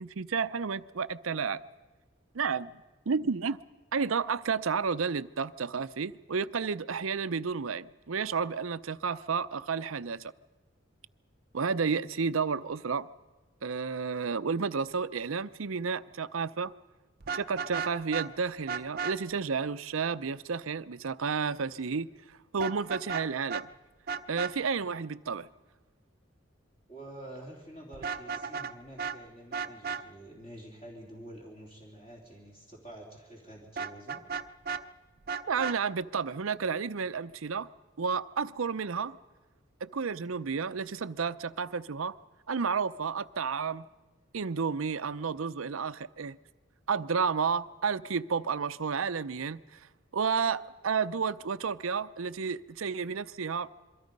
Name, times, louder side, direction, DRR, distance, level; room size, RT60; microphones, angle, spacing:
voice 1, 0.0-1.6 2.3-2.7 3.1-3.6 3.9-10.3 11.5-13.1 13.6-16.7 17.3-23.7 24.3-25.5 35.4-37.7 38.0-39.2 39.8-42.2 42.5-43.9 44.3-46.4 46.9-49.8 50.1-53.7, right 5 dB, 90° right, 0.6 m, -31 dB
Vehicle horn car horn honking, 17.2-18.3 18.7-19.1 22.6-23.2 23.5-23.6 24.1-24.5 27.9-28.7 29.0-29.2 29.5-30.0 33.8-34.8 35.3-35.8, right 6 dB, 45° right, 0.6 m, -34 dB
voice 2, 26.9-34.2, right 1 dB, 30° left, 3.2 m, -48 dB
27.0 x 23.0 x 5.3 m
head